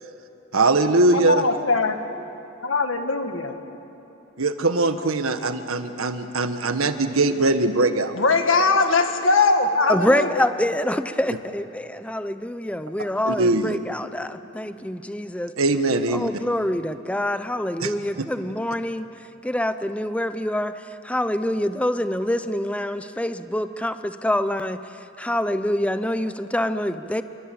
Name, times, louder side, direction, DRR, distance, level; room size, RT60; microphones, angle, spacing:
voice 1, 0.5-1.3 4.4-8.1 13.3-13.8 15.6-16.3 17.8-18.2, right 2 dB, 80° right, 8 dB, 1.6 m, -21 dB
voice 2, 1.1-2.0 2.6-3.5 8.1-10.5, left 3 dB, 65° left, 6 dB, 2.1 m, -21 dB
voice 3, 9.9-15.5 16.1-19.1 19.4-20.8 21.0-24.8 25.2-27.2, left 1 dB, 5° left, 10 dB, 0.7 m, -25 dB
29.0 x 23.5 x 8.7 m, 3.0 s
head